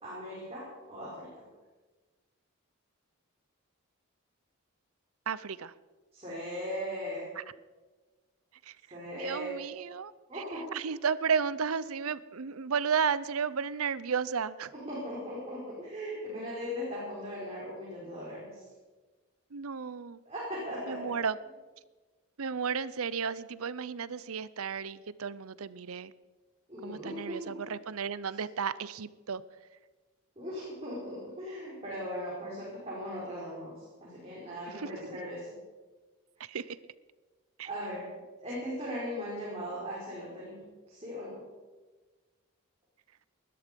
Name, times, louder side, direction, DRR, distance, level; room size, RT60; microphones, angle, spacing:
voice 1, 0.0-1.4 6.1-7.3 8.9-9.5 10.3-10.7 14.7-18.6 20.2-21.1 26.7-27.6 30.3-35.5 37.6-38.1 38.4-41.5, equal, 30° right, -7 dB, 5.1 m, -39 dB
voice 2, 5.3-5.7 7.4-7.5 8.7-8.8 9.1-10.4 10.7-14.7 19.5-20.2 20.9-21.4 22.4-26.1 26.8-29.4 34.7-34.9 36.4-36.8 37.6-37.7, right 6 dB, 80° right, 18 dB, 0.6 m, -33 dB
20.0 x 13.0 x 5.3 m, 1.3 s
head